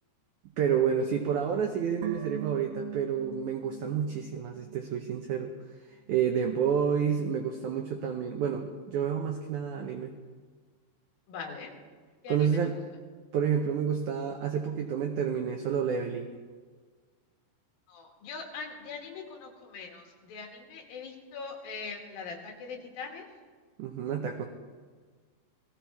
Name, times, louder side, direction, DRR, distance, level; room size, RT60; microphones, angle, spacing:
voice 1, 0.6-5.5 6.1-10.1 12.3-12.8 13.3-16.3 23.8-24.4, right 7 dB, 85° right, 4 dB, 1.7 m, -29 dB
sound 1, 2.0-5.3 5.6-5.7, right 14 dB, 70° right, 2.3 m, -42 dB
voice 2, 11.3-11.7 12.2-12.4 17.9-23.2, left 5 dB, 65° left, 2 dB, 3.4 m, -41 dB
18.5 x 15.5 x 4.6 m, 1.5 s
omnidirectional pair, 4.7 m